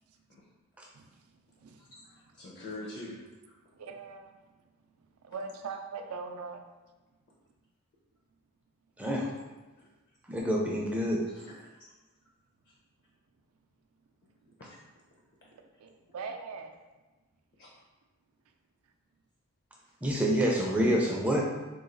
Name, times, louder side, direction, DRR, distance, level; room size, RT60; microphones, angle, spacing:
voice 1, 1.8-3.6 9.8-9.9 11.3-11.9 12.7-12.8 14.6-14.8 17.6-17.7 19.8-19.9, left 2 dB, 45° left, -4 dB, 0.6 m, -46 dB
voice 2, 3.7-4.4 5.2-6.6 15.5-16.8, right 4 dB, 70° right, 5 dB, 0.4 m, -41 dB
voice 3, 9.0-9.3 10.3-11.3 20.0-21.4, equal, 5° right, -2 dB, 0.4 m, -27 dB
3.0 x 2.3 x 3.8 m, 1.2 s
head